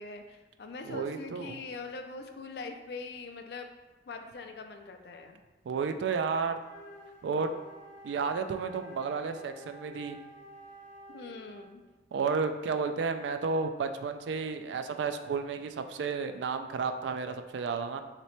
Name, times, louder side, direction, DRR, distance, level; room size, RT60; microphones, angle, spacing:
voice 1, 0.0-3.7 4.1-5.4 11.1-11.8, left 3 dB, 60° left, 5 dB, 0.4 m, -42 dB
voice 2, 0.9-1.6 5.7-6.6 7.2-7.5 8.0-10.2 12.1-18.0, right 5 dB, 75° right, 8 dB, 0.3 m, -32 dB
Wind instrument woodwind instrument, 6.6-11.8, right 1 dB, 40° left, 0.8 m, -51 dB
3.1 x 2.9 x 4.3 m, 1.2 s
head